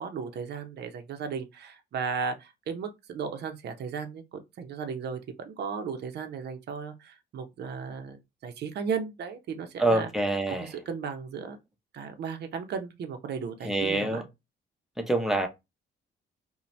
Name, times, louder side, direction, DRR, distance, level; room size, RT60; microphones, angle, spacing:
voice 1, 0.0-5.2 5.5-10.1 10.5-11.6 11.9-14.2, right 6 dB, 55° right, 0.6 m, -35 dB
voice 2, 9.8-10.7 13.6-14.2 15.0-15.5, right 2 dB, ahead, 0.6 m, -26 dB
2.6 x 2.1 x 3.1 m
cardioid pair, 90°, 20 cm